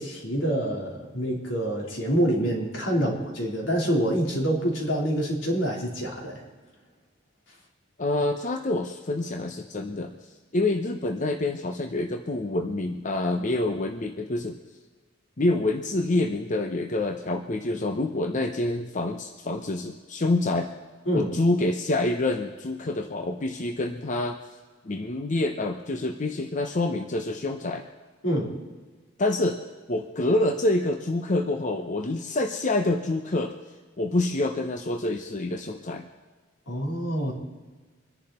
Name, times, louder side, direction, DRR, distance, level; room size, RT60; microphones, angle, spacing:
voice 1, 0.0-6.4 21.1-21.3 28.2-28.5 36.7-37.3, right 1 dB, 85° left, -1 dB, 3.8 m, -26 dB
voice 2, 8.0-10.2 10.5-14.6 15.4-20.7 21.1-24.4 24.8-27.9 29.2-29.6 29.9-33.5 34.0-36.1, left 2 dB, 40° left, 5 dB, 0.8 m, -27 dB
25.5 x 10.5 x 4.3 m, 1.4 s
head